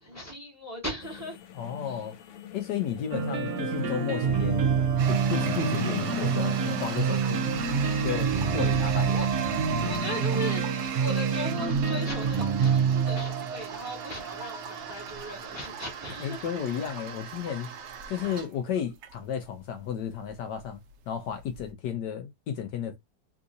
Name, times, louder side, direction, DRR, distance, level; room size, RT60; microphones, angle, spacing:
voice 1, 0.0-1.4 1.9-2.0 8.6-9.3 9.8-16.4 18.2-18.4, equal, 10° right, 1.1 m, -38 dB
sound 1, 1.0-10.0, left 8 dB, 90° left, 0.6 m, -43 dB
voice 2, 1.5-2.2 2.5-4.6 5.0-7.5 8.0-9.1 16.2-17.7 18.1-20.8 21.1-23.0, left 8 dB, 70° left, 1.2 m, -33 dB
sound 2, 3.1-16.0, right 6 dB, 55° right, 0.9 m, -27 dB
Toilet flush, 5.0-21.7, right 7 dB, 80° right, 0.6 m, -39 dB
3.7 x 2.7 x 2.5 m
omnidirectional pair, 2.0 m